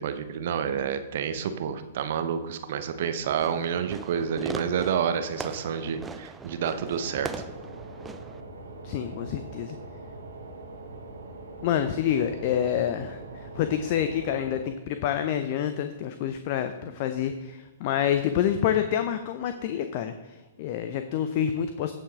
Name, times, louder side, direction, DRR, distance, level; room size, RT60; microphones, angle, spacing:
voice 1, 0.0-7.3, right 7 dB, 50° right, 9 dB, 0.8 m, -29 dB
Fireworks, 3.2-8.4, right 4 dB, 10° right, 0.5 m, -40 dB
sound 1, 6.7-14.6, right 2 dB, 75° right, 2.3 m, -42 dB
voice 2, 8.8-9.8 11.6-20.1 20.6-21.9, left 9 dB, 40° left, 9 dB, 0.6 m, -27 dB
16.0 x 5.7 x 3.7 m, 1.2 s
figure-of-eight pair, 115°, 0 cm